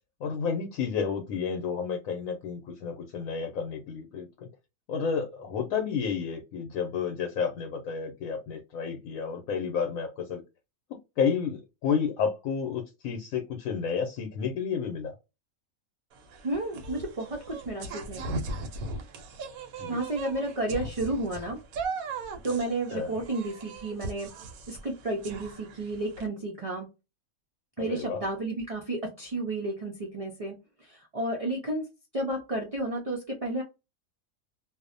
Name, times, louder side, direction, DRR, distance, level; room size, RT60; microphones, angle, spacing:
voice 1, 0.2-4.5 4.9-10.4 11.2-15.1 19.8-20.0 22.9-23.1 27.8-28.2, left 6 dB, 80° left, 3 dB, 1.0 m, -31 dB
sound 1, 16.1-26.3, right 3 dB, 85° right, 1.0 m, -38 dB
voice 2, 16.4-18.4 19.9-21.6 22.4-24.3 24.7-26.9 27.8-31.9 32.1-33.6, right 2 dB, 65° right, -1 dB, 0.3 m, -32 dB
2.6 x 2.0 x 2.5 m, 0.26 s
omnidirectional pair, 1.5 m